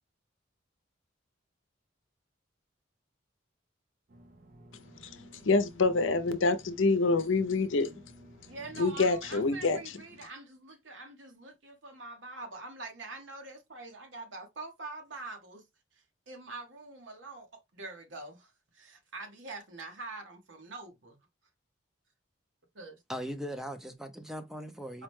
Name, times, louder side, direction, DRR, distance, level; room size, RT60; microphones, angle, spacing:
sound 1, 4.1-9.8, right 1 dB, 45° right, 0.6 m, -54 dB
voice 1, 4.7-8.1 8.4-10.0, left 3 dB, 85° left, 0.6 m, -27 dB
voice 2, 8.5-15.6 16.3-21.2 22.7-23.0 24.9-25.0, right 3 dB, 75° right, 1.2 m, -45 dB
voice 3, 23.1-25.0, equal, 5° right, 0.5 m, -39 dB
4.7 x 2.2 x 3.1 m
head